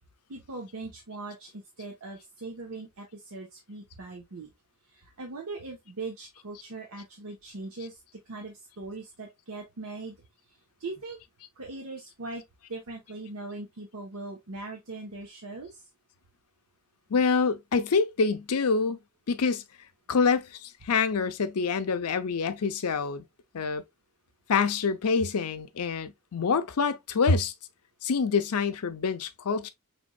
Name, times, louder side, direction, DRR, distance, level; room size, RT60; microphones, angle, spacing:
voice 1, 0.3-4.5 4.9-8.0 8.3-10.2 10.5-11.2 11.6-12.4 12.7-15.9, right 3 dB, 70° right, 1.0 m, -40 dB
voice 2, 17.1-19.0 19.3-19.6 20.1-23.3 23.5-23.8 24.5-27.5 28.0-29.7, left 5 dB, 85° left, 0.6 m, -26 dB
5.2 x 3.4 x 2.2 m
head